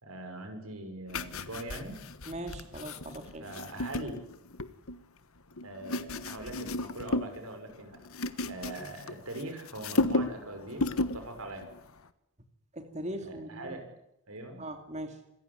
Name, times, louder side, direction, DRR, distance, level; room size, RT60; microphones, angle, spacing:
voice 1, 0.0-2.0 3.4-4.2 5.6-8.0 8.5-11.7 13.2-13.9 14.3-14.7, right 1 dB, 80° right, 6 dB, 6.2 m, -42 dB
sound 1, 1.1-5.0 5.6-7.4 7.7-9.4 9.7-10.5 10.7-11.2 11.6-11.8, left 2 dB, 75° left, 1.3 m, -33 dB
voice 2, 2.3-3.5 12.7-13.8 14.6-15.2, right 1 dB, 30° right, 6 dB, 2.8 m, -40 dB
27.0 x 15.0 x 9.8 m, 0.84 s
head